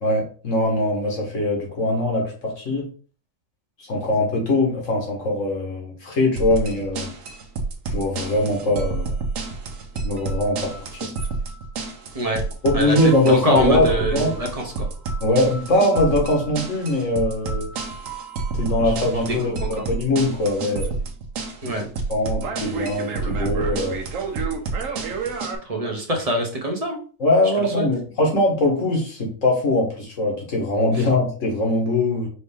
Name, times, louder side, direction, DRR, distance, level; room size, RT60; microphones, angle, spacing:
voice 1, 0.0-2.9 3.9-7.1 7.9-9.1 10.0-11.0 12.6-14.3 15.2-17.7 18.6-20.9 21.6-21.7 22.1-24.0 27.2-32.3, left 2 dB, 70° left, 0 dB, 1.8 m, -22 dB
sound 1, 6.4-25.6, right 4 dB, 85° right, 1.2 m, -29 dB
voice 2, 12.7-14.9 18.8-18.9 19.3-19.8 21.6-21.9 25.6-27.0 27.6-27.9, right 1 dB, 30° right, 2 dB, 1.0 m, -25 dB
5.2 x 2.8 x 3.5 m, 0.40 s
omnidirectional pair, 1.4 m